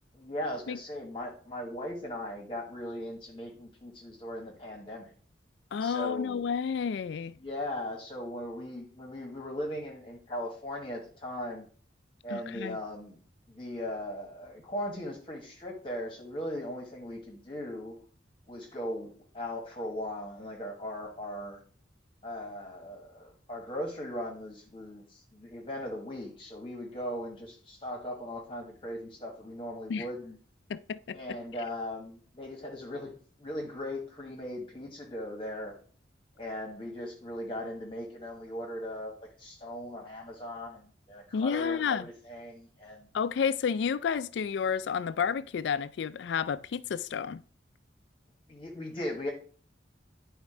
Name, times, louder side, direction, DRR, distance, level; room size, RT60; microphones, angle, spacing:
voice 1, 0.1-5.1 5.8-6.4 7.4-11.6 12.2-13.2 13.5-18.0 18.5-21.6 22.2-30.4 31.1-35.7 36.4-39.1 39.4-43.1 48.5-49.3, left 1 dB, 30° left, 1.2 m, -38 dB
voice 2, 5.7-7.3 12.3-12.8 29.9-30.0 30.7-31.2 41.3-42.1 43.1-47.4, left 6 dB, 70° left, 0.3 m, -30 dB
10.5 x 3.6 x 4.9 m
head